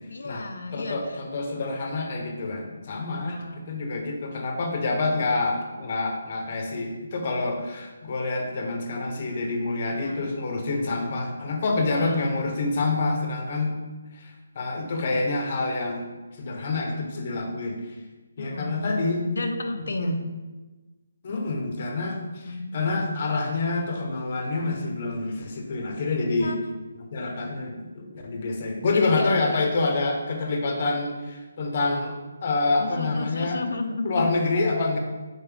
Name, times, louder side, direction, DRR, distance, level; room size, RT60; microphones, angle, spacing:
voice 1, 0.1-1.2 3.1-3.6 10.0-10.3 12.0-12.3 18.4-18.9 19.3-20.2 22.5-22.8 26.4-26.6 28.9-29.3 32.8-34.3, left 3 dB, 70° left, 5 dB, 0.5 m, -32 dB
voice 2, 0.7-3.4 3.7-13.8 14.1-16.1 16.4-17.8 18.4-19.2 20.0-20.2 21.2-26.5 26.9-32.1 32.4-33.6 34.0-35.0, left 3 dB, 30° left, 3 dB, 0.8 m, -27 dB
7.1 x 4.0 x 3.3 m, 1.2 s
hypercardioid pair, 175°, 0 cm